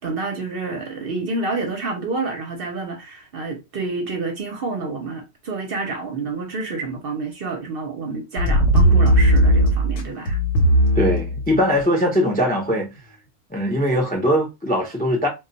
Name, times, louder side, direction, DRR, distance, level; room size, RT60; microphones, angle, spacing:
voice 1, 0.0-10.4, right 3 dB, 55° right, 0.7 m, -28 dB
sound 1, 8.4-11.8 12.7-12.8, right 1 dB, 80° left, 1.0 m, -17 dB
voice 2, 10.9-12.9 13.5-15.3, equal, 15° left, 0.4 m, -21 dB
2.2 x 2.2 x 3.9 m
omnidirectional pair, 1.3 m